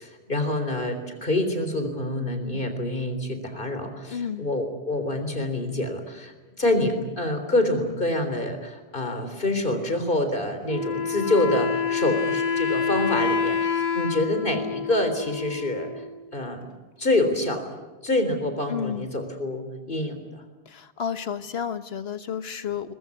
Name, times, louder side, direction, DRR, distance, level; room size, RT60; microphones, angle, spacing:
voice 1, 0.0-16.1 16.3-16.7 17.0-17.7 18.0-20.4, left 1 dB, 55° left, 7 dB, 3.9 m, -26 dB
voice 2, 4.1-4.5 18.7-19.1 20.7-22.9, left 7 dB, 80° left, 11 dB, 1.4 m, -31 dB
Wind instrument woodwind instrument, 10.7-16.2, left 5 dB, 40° left, 2.0 m, -27 dB
22.0 x 21.5 x 9.7 m, 1.2 s
omnidirectional pair, 1.0 m